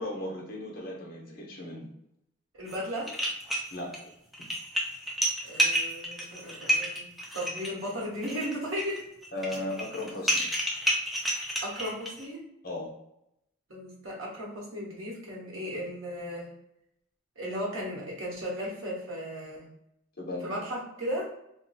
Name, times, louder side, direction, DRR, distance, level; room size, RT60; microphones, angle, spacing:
voice 1, 0.0-1.9 3.7-4.1 9.3-10.4 12.6-12.9 20.2-20.5, left 1 dB, 50° left, -2 dB, 0.9 m, -36 dB
voice 2, 2.6-3.1 5.4-7.1 7.3-9.1 11.6-12.4 13.7-16.5 17.4-19.7 20.4-21.3, equal, 85° right, -4 dB, 1.2 m, -35 dB
sound 1, 2.7-2.8 3.1-4.0 4.3-12.3, equal, ahead, 0.4 m, -30 dB
2.7 x 2.2 x 4.1 m, 0.80 s
head